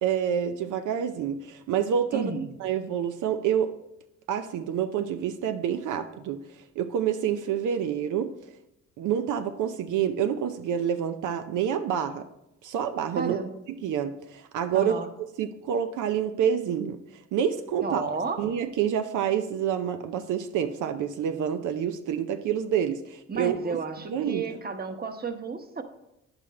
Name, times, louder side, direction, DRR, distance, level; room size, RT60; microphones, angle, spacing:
voice 1, 0.0-2.3 2.6-3.7 4.3-6.4 6.8-8.3 9.0-12.3 12.6-13.4 13.7-14.9 15.4-18.0 18.4-23.8 24.1-24.5, right 8 dB, 80° right, 8 dB, 0.7 m, -28 dB
voice 2, 2.1-2.5 13.1-13.6 14.7-15.1 17.8-18.4 23.3-25.8, right 4 dB, 30° right, 8 dB, 1.1 m, -32 dB
9.6 x 8.1 x 4.2 m, 0.86 s
cardioid pair, 90°, 30 cm